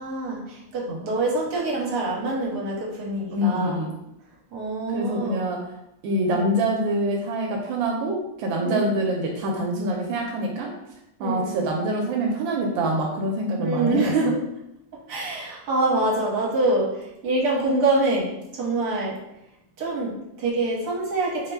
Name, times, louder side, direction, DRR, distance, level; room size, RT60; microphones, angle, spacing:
voice 1, 0.0-3.8 4.5-5.4 6.3-6.5 8.6-8.8 11.2-11.6 13.6-14.4 15.1-16.9 17.2-19.2 19.8-21.5, right 2 dB, 60° right, -4 dB, 1.5 m, -25 dB
voice 2, 3.3-3.9 4.9-5.6 6.0-10.7 11.2-14.1, right 1 dB, 85° right, 0 dB, 1.3 m, -25 dB
4.3 x 2.1 x 3.3 m, 0.84 s
omnidirectional pair, 2.1 m